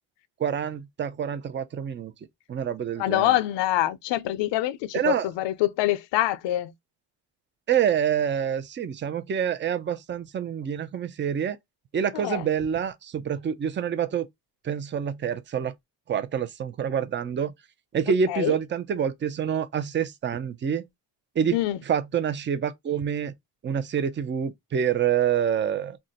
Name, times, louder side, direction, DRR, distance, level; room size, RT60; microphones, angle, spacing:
voice 1, 0.4-2.1 2.5-3.4 4.9-5.3 7.7-11.6 11.9-14.3 14.6-15.7 16.1-17.5 17.9-20.8 21.4-21.6 21.8-23.3 23.6-26.0, right 8 dB, 25° right, 0.5 m, -27 dB
voice 2, 3.0-6.7 12.1-12.4 18.3-18.6 21.5-21.8, left 14 dB, 70° left, 0.6 m, -25 dB
2.4 x 2.1 x 3.9 m
supercardioid pair, 80°, 45 cm